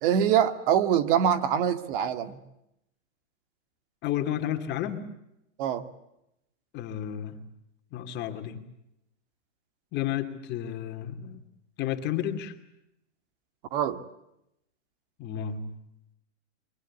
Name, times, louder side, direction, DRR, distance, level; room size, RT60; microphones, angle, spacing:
voice 1, 0.0-2.4 5.6-5.8 13.7-14.0, right 9 dB, 45° right, 12 dB, 2.2 m, -24 dB
voice 2, 4.0-5.1 6.7-7.5 7.9-8.6 9.9-11.4 11.8-12.5 15.2-15.7, left 10 dB, 30° left, 7 dB, 2.6 m, -32 dB
27.5 x 24.0 x 8.4 m, 0.83 s
hypercardioid pair, 145°, 37 cm